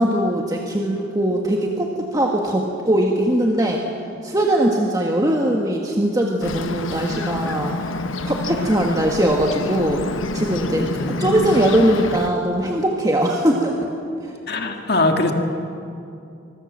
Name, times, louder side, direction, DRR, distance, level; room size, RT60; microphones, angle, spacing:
voice 1, 0.0-3.8 4.2-7.8 8.2-10.1 10.3-13.9 14.2-14.3, right 1 dB, 20° right, 0 dB, 1.6 m, -20 dB
Bird, 6.4-12.3, left 2 dB, 80° left, 1.2 m, -27 dB
voice 2, 10.8-11.1 14.5-15.3, left 2 dB, 55° left, 4 dB, 2.1 m, -21 dB
24.5 x 21.5 x 7.5 m, 2.6 s
head